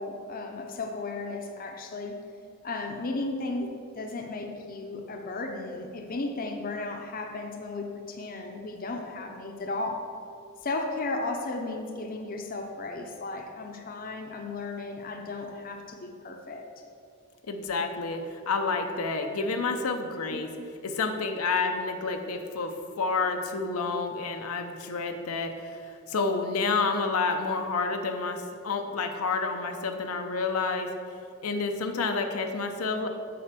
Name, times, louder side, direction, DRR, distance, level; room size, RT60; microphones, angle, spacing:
voice 1, 0.0-2.2 2.6-10.1 10.6-16.6 20.3-20.4, left 2 dB, 40° left, 3 dB, 0.7 m, -35 dB
voice 2, 17.5-20.5 20.8-30.9 31.4-33.1, left 4 dB, 80° left, 5 dB, 0.7 m, -29 dB
7.7 x 4.4 x 6.6 m, 2.5 s
head